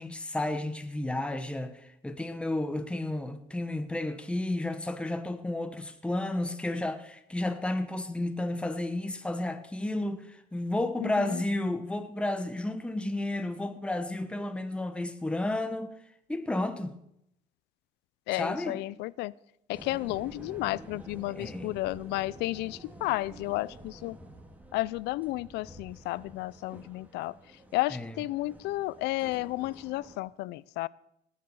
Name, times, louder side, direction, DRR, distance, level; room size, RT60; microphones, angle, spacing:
voice 1, 0.0-15.9 16.3-16.9 18.3-18.8 21.3-21.7 27.9-28.2, left 1 dB, 5° left, 1.0 m, -32 dB
voice 2, 11.0-11.4 18.3-19.3 19.7-24.2 24.7-27.3 27.7-30.9, left 18 dB, 85° left, 0.4 m, -32 dB
sound 1, 19.7-30.2, right 1 dB, 10° right, 2.0 m, -49 dB
19.0 x 6.7 x 7.0 m
cardioid pair, 110°, 17 cm